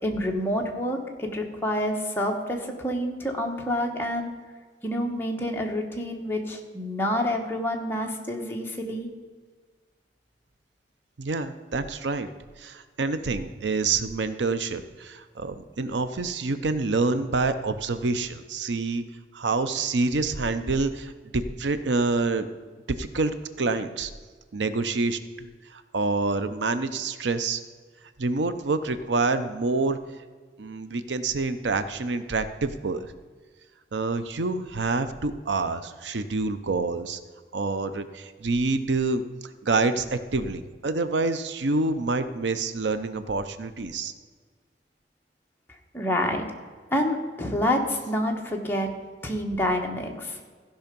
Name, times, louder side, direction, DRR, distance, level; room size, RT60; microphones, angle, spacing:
voice 1, 0.0-4.3 4.8-9.1 45.9-46.4 46.9-48.9 49.2-50.4, left 1 dB, 10° left, 0 dB, 1.2 m, -28 dB
voice 2, 11.2-12.3 12.6-19.0 19.3-22.5 22.9-24.1 24.5-27.6 28.2-30.0 30.6-33.1 33.9-37.2 37.5-39.2 39.6-44.1, right 3 dB, 90° right, 11 dB, 0.7 m, -27 dB
15.0 x 5.7 x 5.2 m, 1.5 s
head